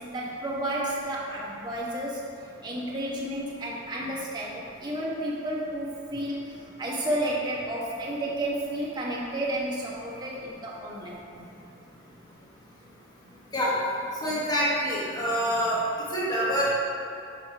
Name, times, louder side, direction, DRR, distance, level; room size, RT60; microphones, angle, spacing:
voice 1, 0.0-2.2 2.6-11.2, right 1 dB, 20° right, -5 dB, 1.3 m, -31 dB
voice 2, 14.2-15.8 16.1-16.7, equal, 20° left, -8 dB, 1.4 m, -26 dB
6.4 x 6.0 x 4.7 m, 2.7 s
head